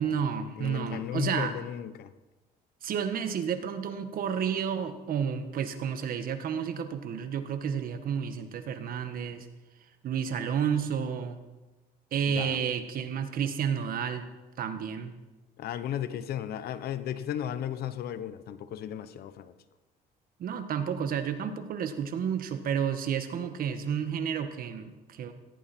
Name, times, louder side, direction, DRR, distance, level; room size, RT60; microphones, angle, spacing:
voice 1, 0.0-1.5 2.8-9.5 10.0-11.4 12.1-14.2 14.6-15.1 20.4-25.3, right 7 dB, 60° right, 1.7 m, -31 dB
voice 2, 0.6-2.1 12.3-12.6 15.6-19.5, left 10 dB, 65° left, 1.0 m, -35 dB
17.5 x 15.5 x 4.5 m
cardioid pair, 110°, 17 cm